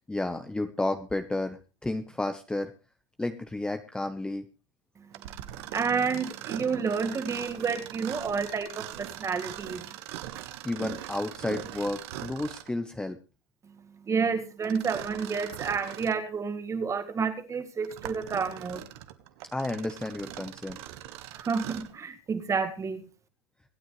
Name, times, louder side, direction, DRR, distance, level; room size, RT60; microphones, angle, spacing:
voice 1, 0.1-2.7 3.2-4.5 10.6-13.2 19.5-20.8, left 2 dB, 5° left, 1.0 m, -32 dB
Mechanisms, 5.1-12.8 14.6-16.2 16.8-16.9 17.6-22.0, right 13 dB, 60° right, 1.6 m, -41 dB
voice 2, 5.7-9.9 14.1-18.8 21.3-23.1, right 5 dB, 20° right, 2.0 m, -30 dB
25.0 x 9.3 x 3.3 m
hypercardioid pair, 115°, 15 cm